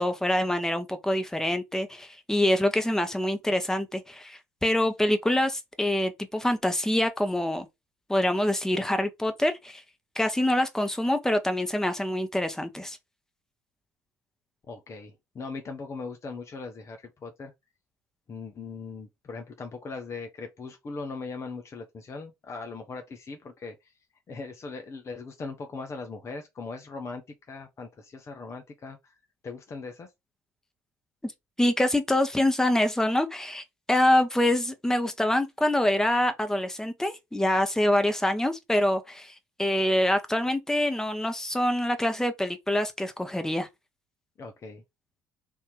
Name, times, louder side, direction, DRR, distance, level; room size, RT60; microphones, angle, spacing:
voice 1, 0.0-7.7 8.1-9.8 10.1-13.0 31.2-31.3 31.6-39.3 39.6-43.7, left 1 dB, 5° left, 1.0 m, -25 dB
voice 2, 14.7-17.5 18.3-23.9 24.3-27.2 27.5-29.1 29.4-30.1 44.4-44.8, left 4 dB, 35° left, 0.8 m, -39 dB
3.5 x 2.8 x 4.7 m
figure-of-eight pair, 55°, 9 cm